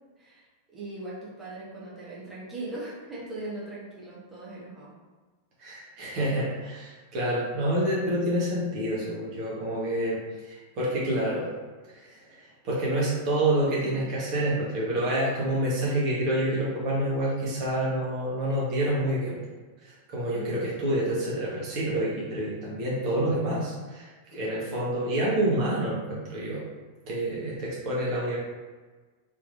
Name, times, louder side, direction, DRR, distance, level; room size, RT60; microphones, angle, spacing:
voice 1, 0.2-0.5 0.7-4.9 20.3-20.7, right 2 dB, 15° right, -8 dB, 1.1 m, -39 dB
voice 2, 5.6-10.2 10.5-11.5 11.9-12.4 12.6-19.3 19.8-26.6 27.1-28.4, right 1 dB, 40° right, -6 dB, 1.2 m, -28 dB
3.5 x 3.0 x 2.5 m, 1.3 s
figure-of-eight pair, 90°, 0 cm